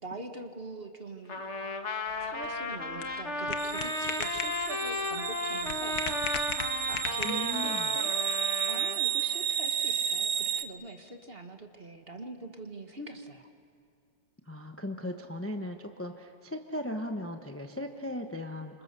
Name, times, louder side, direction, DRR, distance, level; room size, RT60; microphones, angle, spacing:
voice 1, 0.0-1.4 2.2-6.0 6.9-8.1 8.7-13.5, right 2 dB, 35° right, 5 dB, 1.6 m, -43 dB
Trumpet, 1.3-9.0, left 3 dB, 40° left, 1.7 m, -35 dB
sound 1, 2.1-7.7, left 7 dB, 60° left, 1.5 m, -39 dB
sound 2, 3.6-10.6, right 9 dB, 75° right, 1.4 m, -32 dB
voice 2, 7.2-7.9 14.5-18.8, left 1 dB, 10° left, 4 dB, 0.9 m, -37 dB
29.0 x 26.5 x 6.8 m, 2.4 s
omnidirectional pair, 1.9 m